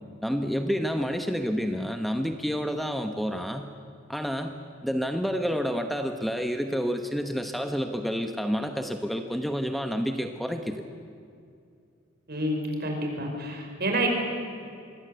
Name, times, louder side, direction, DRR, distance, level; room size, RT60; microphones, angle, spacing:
voice 1, 0.2-3.7 4.1-10.8, equal, ahead, 6 dB, 1.0 m, -29 dB
voice 2, 12.3-14.1, right 1 dB, 55° right, 2 dB, 5.6 m, -28 dB
27.0 x 22.0 x 8.1 m, 2.4 s
head